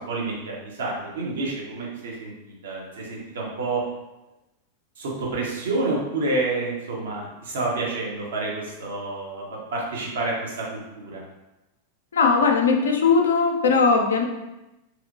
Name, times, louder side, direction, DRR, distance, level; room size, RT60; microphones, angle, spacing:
voice 1, 0.0-3.8 5.0-9.4 9.7-11.2, right 2 dB, 60° right, -3 dB, 0.8 m, -29 dB
voice 2, 12.1-14.2, left 4 dB, 65° left, 3 dB, 0.4 m, -19 dB
3.0 x 2.8 x 2.5 m, 0.99 s
figure-of-eight pair, 90°, 0 cm